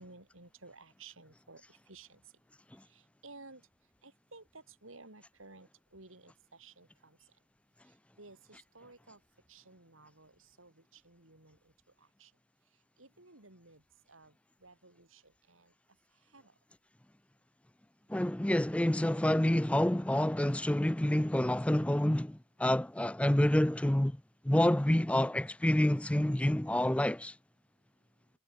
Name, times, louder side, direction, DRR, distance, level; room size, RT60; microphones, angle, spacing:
voice 1, 0.0-2.2 2.9-3.7 4.0-7.2 7.9-9.2 9.5-11.7 12.0-12.3 13.0-13.8 14.1-14.3 14.6-15.7 16.3-16.5, right 3 dB, 80° right, 6.4 m, -55 dB
voice 2, 18.1-24.2 24.4-27.4, left 1 dB, 5° left, 0.4 m, -28 dB
head